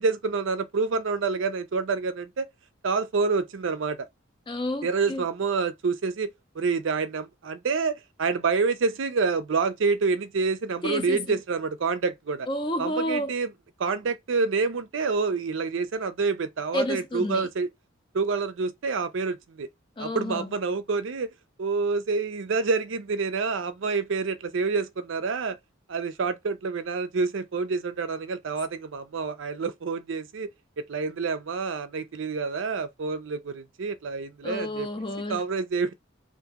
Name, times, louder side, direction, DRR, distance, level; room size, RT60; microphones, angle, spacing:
voice 1, 0.0-2.5 2.8-4.0 4.8-6.3 6.6-12.5 12.8-13.5 13.8-17.7 18.1-19.7 20.0-21.3 21.6-25.6 25.9-30.5 30.9-34.9 35.3-35.9, right 4 dB, 70° right, 0.5 m, -27 dB
voice 2, 4.5-5.2 10.8-11.2 12.5-13.3 16.7-17.5 20.0-20.5 34.4-35.4, left 1 dB, 25° left, 0.4 m, -30 dB
2.8 x 2.5 x 3.6 m
head